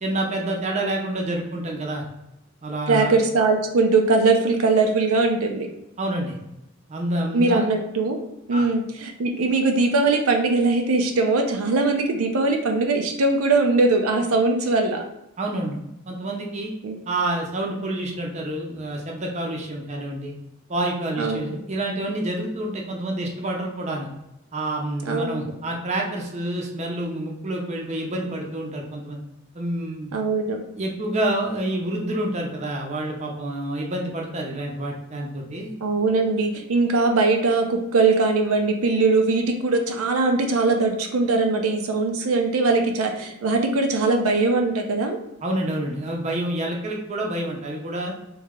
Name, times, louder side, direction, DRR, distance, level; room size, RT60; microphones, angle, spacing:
voice 1, 0.0-2.0 2.6-3.1 6.0-6.4 6.9-7.6 8.5-8.6 15.4-16.7 17.1-20.3 20.7-24.1 24.5-29.2 29.5-30.1 30.8-35.7 45.4-48.1, right 1 dB, 30° right, 0 dB, 0.6 m, -28 dB
voice 2, 2.9-5.7 7.3-8.2 8.5-15.0 16.8-17.0 21.2-21.4 25.1-25.3 30.1-30.6 35.8-45.2, right 3 dB, 90° right, 3 dB, 0.5 m, -21 dB
3.1 x 2.7 x 3.6 m, 0.87 s
head